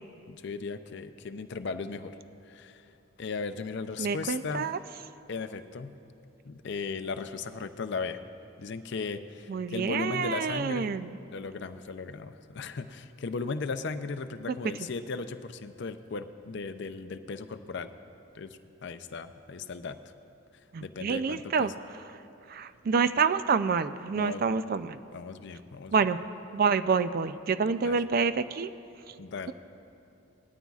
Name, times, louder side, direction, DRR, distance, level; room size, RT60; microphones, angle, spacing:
voice 1, 0.3-2.2 2.5-2.9 3.2-4.7 5.3-6.0 6.4-8.2 8.6-10.9 11.3-17.9 18.3-20.0 20.8-21.7 24.1-24.5 25.1-25.9 27.8-28.0 29.2-29.5, left 4 dB, 55° left, 9 dB, 0.5 m, -36 dB
voice 2, 4.0-4.8 9.5-11.2 20.7-21.7 22.5-25.0 25.9-26.2 26.5-28.7 29.1-29.2, right 5 dB, 45° right, 12 dB, 0.3 m, -27 dB
19.0 x 13.0 x 2.4 m, 2.7 s
head